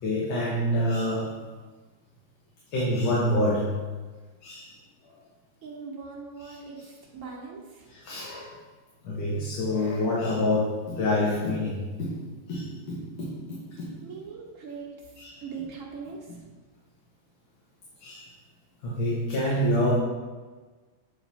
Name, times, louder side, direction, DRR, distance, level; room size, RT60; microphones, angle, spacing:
voice 1, 0.0-1.3 2.7-3.7 4.4-4.7 5.0-5.1 7.9-8.6 9.0-14.0 18.0-18.3 18.8-19.9, left 1 dB, 80° left, -6 dB, 2.0 m, -27 dB
voice 2, 5.6-7.9 14.0-16.5, right 5 dB, 45° right, -2 dB, 1.4 m, -41 dB
7.7 x 4.3 x 4.1 m, 1.3 s
omnidirectional pair, 2.1 m